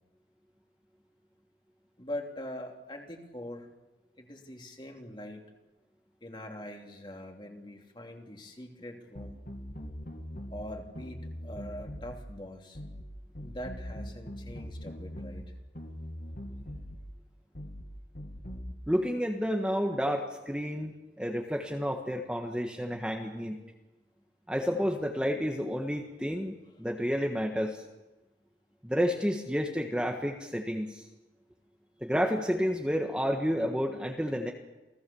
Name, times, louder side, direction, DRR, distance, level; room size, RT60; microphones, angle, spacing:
voice 1, 2.0-3.7 4.2-5.5 6.2-9.4 10.5-12.8 13.4-15.5, left 1 dB, 25° left, 2 dB, 3.1 m, -43 dB
sound 1, 9.1-10.7 10.9-12.2 12.7-13.1 13.3-15.5 15.7-17.0 17.5-17.9 18.1-18.7, equal, 50° left, 2.6 m, -41 dB
voice 2, 18.9-23.6 24.5-27.8 28.8-31.0 32.0-34.5, equal, 5° right, 2 dB, 1.5 m, -30 dB
29.0 x 18.5 x 7.1 m, 1.1 s
head